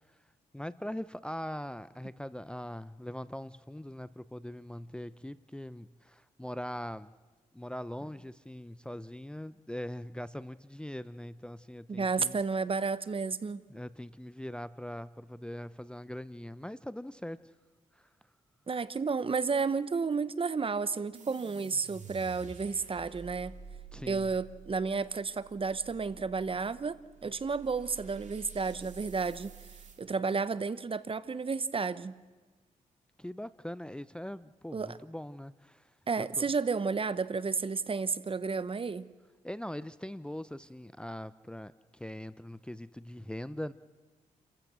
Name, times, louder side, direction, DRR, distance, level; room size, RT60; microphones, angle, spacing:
voice 1, 0.5-7.1 7.5-12.4 13.7-17.4 18.0-18.1 23.9-24.3 33.2-35.9 36.2-36.4 39.4-43.7, left 1 dB, 5° left, 15 dB, 0.6 m, -41 dB
voice 2, 11.9-13.6 18.7-23.5 24.1-29.7 30.0-32.2 34.7-35.0 36.1-39.1, right 4 dB, 40° right, 16 dB, 0.9 m, -32 dB
sound 1, 21.1-30.0, right 6 dB, 55° right, 2.6 m, -50 dB
29.5 x 15.0 x 6.3 m, 1.3 s
cardioid pair, 60°, 15 cm